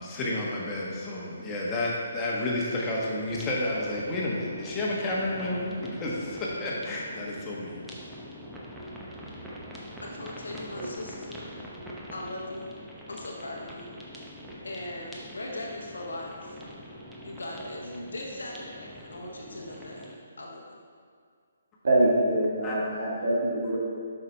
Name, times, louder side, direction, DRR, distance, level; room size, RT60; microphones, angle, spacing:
voice 1, 0.0-7.9 22.6-22.8, left 1 dB, 20° left, -4 dB, 1.3 m, -31 dB
sound 1, 3.3-20.2, equal, 5° right, 0.8 m, -44 dB
voice 2, 10.0-11.5 12.1-12.7 13.1-13.9 14.6-16.6 17.2-20.8, left 1 dB, 70° left, -1 dB, 0.9 m, -39 dB
voice 3, 21.8-23.9, right 1 dB, 60° right, -5 dB, 1.5 m, -25 dB
8.0 x 5.8 x 3.4 m, 2.2 s
figure-of-eight pair, 135°, 0 cm